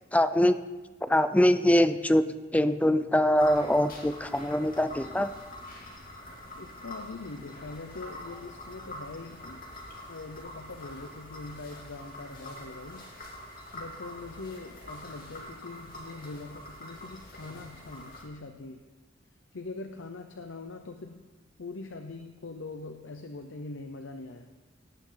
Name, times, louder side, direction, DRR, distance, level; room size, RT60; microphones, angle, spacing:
voice 1, 0.1-0.6 1.1-2.2 2.5-5.3, left 1 dB, 5° left, 11 dB, 0.5 m, -23 dB
sound 1, 3.4-18.2, left 1 dB, 45° left, 2.7 m, -45 dB
voice 2, 6.5-9.6 10.1-13.1 13.7-18.8 19.5-21.2 21.6-24.5, left 3 dB, 70° left, 6 dB, 0.8 m, -42 dB
18.0 x 10.0 x 4.0 m, 1.2 s
head